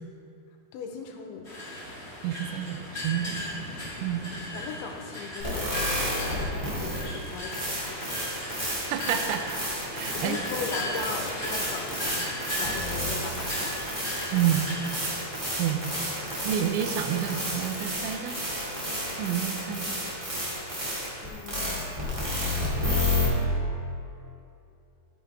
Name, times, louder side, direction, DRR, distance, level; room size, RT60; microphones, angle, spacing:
voice 1, 0.7-1.5 3.3-3.5 4.3-8.2 10.1-12.3 12.6-13.7 21.2-22.3, left 5 dB, 90° left, 3 dB, 3.2 m, -39 dB
sound 1, 1.4-15.0, left 1 dB, 50° left, 0.7 m, -37 dB
voice 2, 2.2-3.5 4.0-4.2 8.7-9.4 9.9-10.4 14.3-14.7 15.6-15.8 16.4-18.4 19.2-20.0, right 10 dB, 85° right, 6 dB, 3.1 m, -29 dB
sound 2, 5.4-23.3, left 1 dB, 40° right, 0.4 m, -31 dB
14.5 x 8.6 x 3.5 m, 2.7 s
omnidirectional pair, 5.3 m